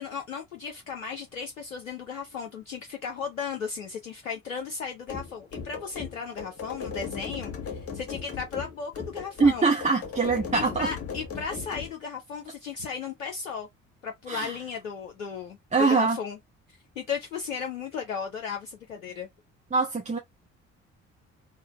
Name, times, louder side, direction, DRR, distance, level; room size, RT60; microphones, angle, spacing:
voice 1, 0.0-9.7 10.5-13.7 14.0-15.6 15.9-16.4 16.7-19.3, left 6 dB, 80° left, 0.5 m, -35 dB
sound 1, 5.1-11.9, left 5 dB, 35° left, 1.3 m, -37 dB
voice 2, 9.4-10.9 14.3-14.5 15.7-16.2 19.7-20.2, right 4 dB, 20° right, 0.8 m, -23 dB
3.2 x 2.9 x 2.9 m
figure-of-eight pair, 45°, 39 cm